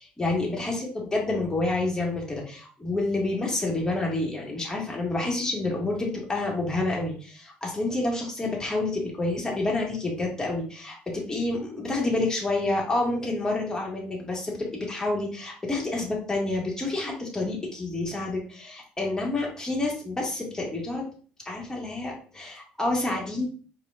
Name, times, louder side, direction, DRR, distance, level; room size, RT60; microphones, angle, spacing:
voice 1, 0.0-21.0 21.5-23.5, left 2 dB, 15° left, -2 dB, 1.9 m, -28 dB
4.6 x 3.1 x 2.5 m, 0.41 s
supercardioid pair, 80°, 4 cm